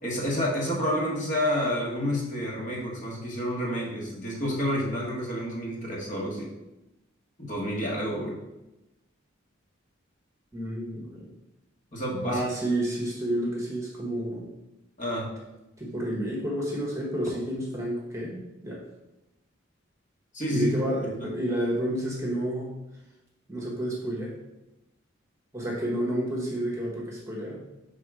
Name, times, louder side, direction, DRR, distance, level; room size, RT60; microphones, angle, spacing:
voice 1, 0.0-6.5 7.4-8.3 11.9-12.4 15.0-15.3 20.3-21.3, equal, 40° left, -3 dB, 1.4 m, -29 dB
voice 2, 10.5-11.3 12.2-14.4 15.8-18.8 20.5-22.7 23.5-24.3 25.5-27.6, right 1 dB, 15° right, -3 dB, 1.1 m, -30 dB
6.0 x 3.8 x 4.8 m, 0.97 s
head